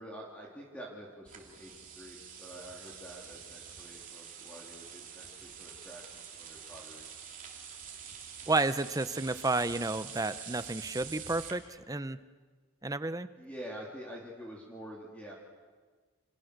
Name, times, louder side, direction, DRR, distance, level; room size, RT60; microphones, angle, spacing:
voice 1, 0.0-7.1 13.4-15.3, equal, 5° left, -3 dB, 3.3 m, -47 dB
sound 1, 1.3-11.5, right 7 dB, 35° right, 3.1 m, -46 dB
voice 2, 8.5-12.2 12.8-13.3, right 2 dB, 15° right, 13 dB, 0.7 m, -31 dB
29.5 x 28.0 x 6.7 m, 1.4 s
head